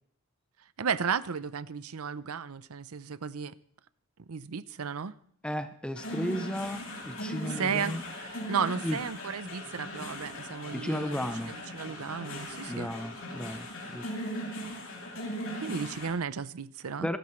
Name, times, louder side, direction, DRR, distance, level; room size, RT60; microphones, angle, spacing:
voice 1, 0.8-3.5 4.3-5.1 7.4-12.9 15.6-17.1, right 6 dB, 80° right, 0.7 m, -34 dB
voice 2, 5.4-8.0 8.8-9.0 10.7-11.5 12.7-14.1 17.0-17.2, equal, 5° left, 0.6 m, -34 dB
sound 1, 6.0-16.1, equal, 60° left, 4.6 m, -39 dB
27.5 x 13.0 x 3.2 m
head